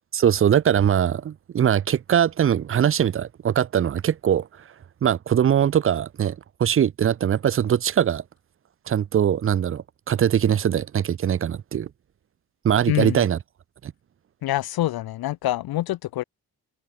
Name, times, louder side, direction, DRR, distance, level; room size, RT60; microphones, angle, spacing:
voice 1, 0.1-4.5 5.0-8.2 8.9-11.9 12.6-13.4 13.8-13.9, right 9 dB, 35° right, 0.5 m, -21 dB
voice 2, 12.9-13.2 14.4-16.2, left 15 dB, 75° left, 0.5 m, -26 dB
supercardioid pair, 50°, 38 cm